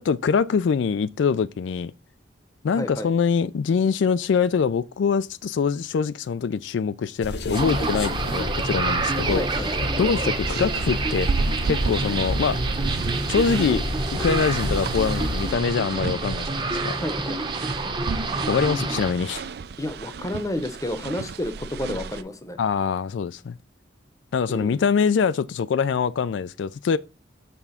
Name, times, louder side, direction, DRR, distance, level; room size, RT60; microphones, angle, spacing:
voice 1, 0.0-1.9 2.6-9.6 10.0-11.3 11.6-12.6 13.3-13.8 14.2-17.0 18.5-19.4 22.6-23.6 24.3-27.0, left 6 dB, 80° left, 0.3 m, -24 dB
voice 2, 2.8-3.1 9.2-9.7 16.9-17.4 19.8-22.6 24.5-24.8, left 1 dB, 20° left, 0.7 m, -31 dB
sound 1, 7.2-15.5, left 1 dB, 60° left, 0.8 m, -32 dB
sound 2, 7.5-19.1, right 3 dB, 25° right, 0.8 m, -28 dB
sound 3, 10.4-22.2, right 4 dB, 60° right, 0.4 m, -33 dB
7.0 x 3.5 x 5.5 m
head